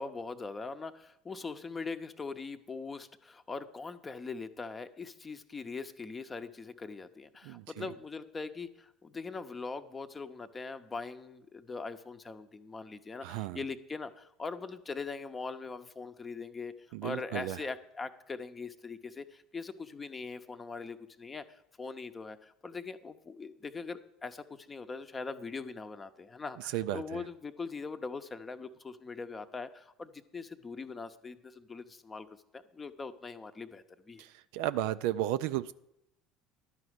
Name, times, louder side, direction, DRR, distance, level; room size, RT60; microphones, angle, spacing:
voice 1, 0.0-16.7 17.0-32.3 32.5-34.2, left 4 dB, 25° left, 10 dB, 0.7 m, -41 dB
voice 2, 7.4-7.9 13.2-13.6 16.9-17.6 26.7-27.2 34.2-35.7, right 13 dB, 65° right, 13 dB, 0.3 m, -34 dB
11.5 x 4.9 x 8.0 m, 0.83 s
figure-of-eight pair, 65°, 0 cm